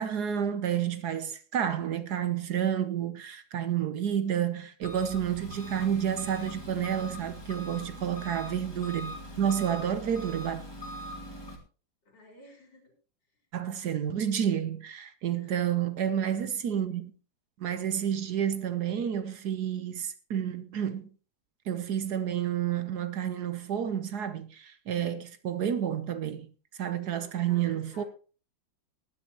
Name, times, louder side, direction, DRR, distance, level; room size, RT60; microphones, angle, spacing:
voice 1, 0.0-10.6 13.5-17.1 17.6-21.1 21.7-26.5 26.8-28.0, right 9 dB, 60° right, 1.2 m, -30 dB
Engine, 4.8-11.6, left 1 dB, 10° left, 2.2 m, -42 dB
voice 2, 7.9-8.4 12.0-12.9 13.3-13.5 15.3-15.8 27.0-28.1, left 2 dB, 65° left, 4.5 m, -54 dB
19.0 x 10.5 x 2.9 m
omnidirectional pair, 2.1 m